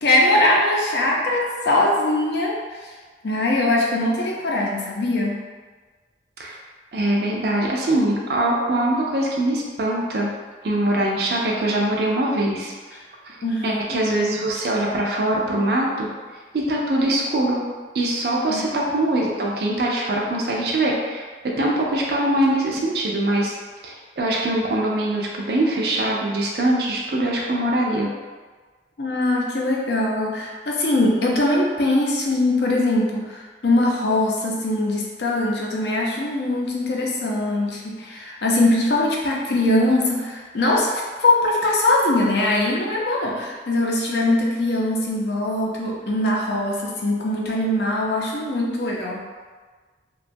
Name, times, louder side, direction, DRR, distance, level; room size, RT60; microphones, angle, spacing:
voice 1, 0.0-2.5 2.8-2.9 3.2-5.4 13.4-13.8 18.5-18.6 29.0-49.2, left 1 dB, 70° left, -2 dB, 0.5 m, -21 dB
voice 2, 6.9-10.3 10.6-13.0 13.2-13.4 13.6-16.1 16.5-17.6 17.9-23.6 23.8-28.1, right 1 dB, 60° right, -2 dB, 0.4 m, -22 dB
2.9 x 2.2 x 2.6 m, 1.4 s
head